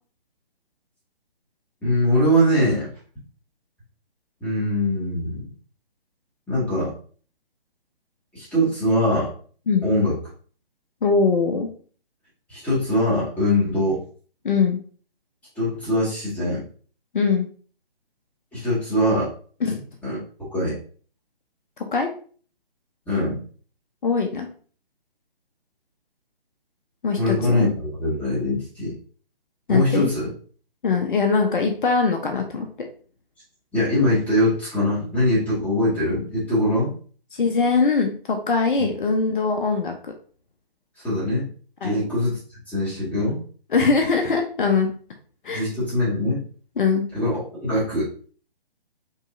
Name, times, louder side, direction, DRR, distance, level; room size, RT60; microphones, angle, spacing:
voice 1, 1.8-2.9 4.4-5.4 6.5-6.9 8.3-9.3 9.8-10.2 12.5-14.0 15.5-16.6 18.5-19.3 20.0-20.2 20.5-20.8 23.1-23.4 27.2-28.9 29.7-30.3 33.7-36.9 38.8-38.9 41.0-41.5 41.8-42.4 42.7-43.4 45.5-46.4 47.1-48.1, left 1 dB, 5° left, -9 dB, 1.7 m, -22 dB
voice 2, 11.0-11.7 14.4-14.8 17.1-17.5 19.6-19.8 21.9-22.1 24.0-24.5 27.0-27.7 29.7-30.1 30.8-32.7 37.3-40.1 41.8-42.0 43.7-44.9 45.4-45.7 46.8-47.1, left 4 dB, 60° left, 4 dB, 0.8 m, -21 dB
5.3 x 3.0 x 2.6 m, 0.43 s
figure-of-eight pair, 145°, 29 cm